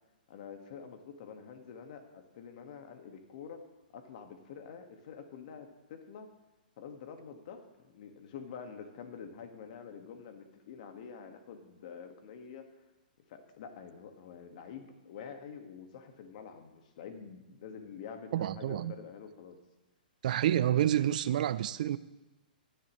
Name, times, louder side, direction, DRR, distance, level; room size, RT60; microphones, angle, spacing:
voice 1, 0.3-3.7 3.9-6.3 6.8-12.7 13.3-19.6, left 6 dB, 55° left, 6 dB, 1.7 m, -47 dB
voice 2, 18.3-18.9 20.2-22.0, right 11 dB, 55° right, 17 dB, 0.5 m, -28 dB
17.0 x 10.5 x 3.1 m, 1.1 s
hypercardioid pair, 135°, 5 cm